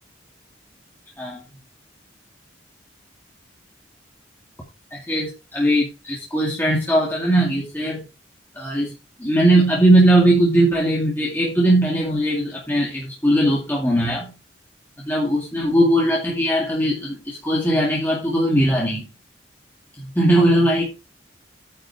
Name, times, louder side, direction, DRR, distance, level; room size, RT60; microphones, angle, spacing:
voice 1, 4.9-8.1 8.5-8.9 9.2-14.3 15.0-19.1 20.0-20.9, right 1 dB, 10° left, -3 dB, 2.2 m, -19 dB
9.5 x 6.5 x 4.7 m, 0.30 s
head